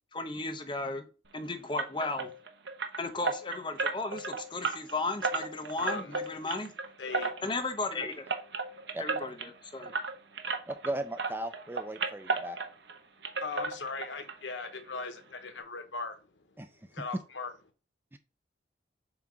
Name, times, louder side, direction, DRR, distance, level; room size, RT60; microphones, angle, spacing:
voice 1, 0.1-1.1 1.3-2.3 3.0-6.7 7.4-8.2 9.0-9.9, left 3 dB, 25° left, 0.8 m, -35 dB
sound 1, 1.8-10.9 11.2-13.0 13.2-14.3 14.6-14.7 15.2-15.3 15.6-15.7, right 4 dB, 70° right, 0.8 m, -35 dB
voice 2, 5.8-6.1 7.0-7.3 13.4-16.2 16.9-17.5, left 4 dB, 85° left, 1.0 m, -38 dB
voice 3, 10.7-12.6 16.6-16.7 18.1-18.2, right 1 dB, 10° right, 0.4 m, -36 dB
7.1 x 2.9 x 4.9 m
head